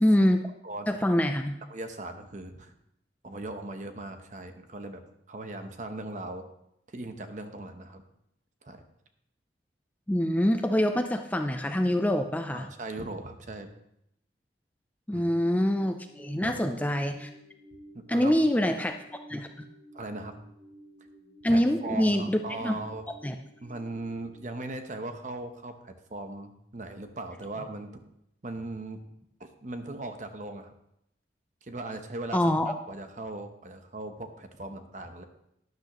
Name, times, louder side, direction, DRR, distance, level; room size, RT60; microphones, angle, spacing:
voice 1, 0.0-0.5 0.9-1.6 10.1-12.7 15.1-17.3 18.1-18.9 19.3-19.7 21.4-22.8 23.2-23.4 32.3-32.7, equal, 10° left, 6 dB, 0.4 m, -25 dB
voice 2, 1.7-2.7 3.2-6.5 6.9-8.0 8.6-8.8 12.5-13.7 15.1-15.2 16.4-16.8 17.9-18.7 19.9-20.3 21.5-23.0 23.6-28.0 28.4-29.0 29.4-30.7 31.6-35.2, right 2 dB, 45° right, 7 dB, 0.9 m, -39 dB
sound 1, 15.7-24.5, right 1 dB, 15° right, 4.7 m, -52 dB
12.0 x 10.5 x 3.0 m, 0.78 s
head